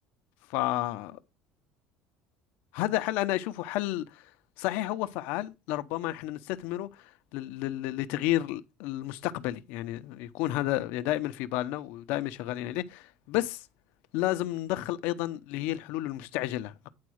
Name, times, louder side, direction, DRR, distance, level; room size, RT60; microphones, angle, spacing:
voice 1, 0.5-1.2 2.7-4.2 4.6-13.7 14.1-16.9, left 15 dB, 75° left, 0.8 m, -31 dB
9.7 x 4.1 x 6.4 m
cardioid pair, 135°, 3 cm